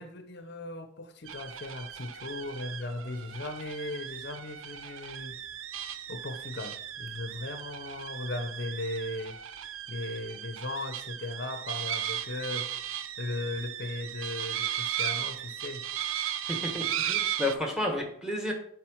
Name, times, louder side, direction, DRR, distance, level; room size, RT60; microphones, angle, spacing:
voice 1, 0.0-5.4 6.1-9.4 9.9-12.7 13.2-15.9, left 2 dB, 55° left, 0.7 m, -37 dB
sound 1, 1.3-17.5, right 10 dB, 90° right, 0.6 m, -36 dB
voice 2, 16.5-18.5, left 1 dB, 5° right, 1.5 m, -31 dB
7.4 x 3.9 x 6.3 m
head